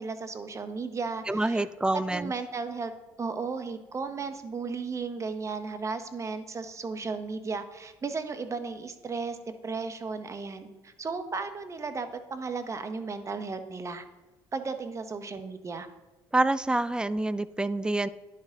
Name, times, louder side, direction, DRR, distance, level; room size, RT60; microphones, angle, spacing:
voice 1, 0.0-1.7 1.9-2.9 3.2-9.4 9.6-14.0 14.5-15.9, right 4 dB, 30° right, 9 dB, 0.8 m, -35 dB
voice 2, 1.3-2.3 16.3-18.1, right 2 dB, 10° right, 16 dB, 0.3 m, -27 dB
11.0 x 4.9 x 2.8 m, 1.1 s
hypercardioid pair, 70°, 10 cm